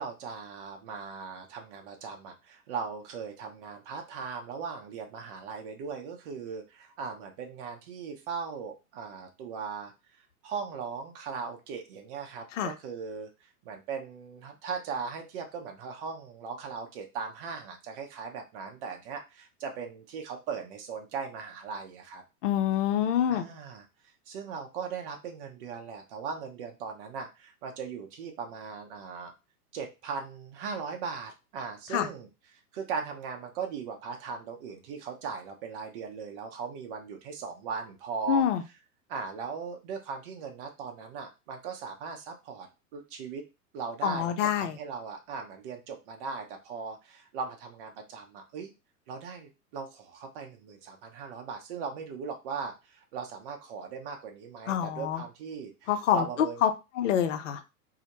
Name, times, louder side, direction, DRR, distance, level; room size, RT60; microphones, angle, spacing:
voice 1, 0.0-9.9 10.4-13.3 13.6-22.2 23.3-23.8 24.3-29.3 29.7-38.4 39.1-43.4 43.7-48.7 49.1-56.7, right 5 dB, 40° right, 0.6 m, -38 dB
voice 2, 22.4-23.4 31.9-32.1 38.3-38.6 44.0-44.7 54.7-55.2 55.9-56.2 56.6-56.7 57.0-57.6, left 9 dB, 55° left, 0.5 m, -26 dB
2.1 x 2.1 x 2.9 m
figure-of-eight pair, 105°, 47 cm